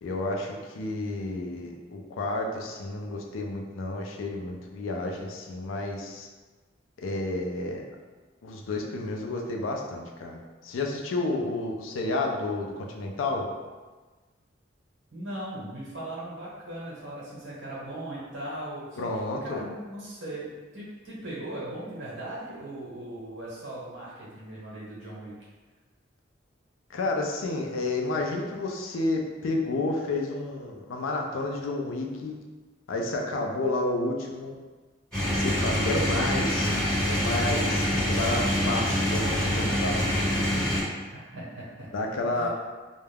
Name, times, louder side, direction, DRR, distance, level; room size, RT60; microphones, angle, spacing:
voice 1, 0.0-6.3 7.0-7.8 8.4-13.5 19.0-19.6 26.9-32.3 32.9-34.6 35.3-36.7 37.0-40.1 41.9-42.5, left 2 dB, 80° left, 1 dB, 0.4 m, -31 dB
voice 2, 15.1-19.1 19.4-25.3 41.1-41.9 42.3-42.5, right 1 dB, 65° right, -7 dB, 1.0 m, -38 dB
sound 1, 35.1-40.8, equal, 5° left, 1.2 m, -25 dB
2.3 x 2.1 x 3.3 m, 1.3 s
head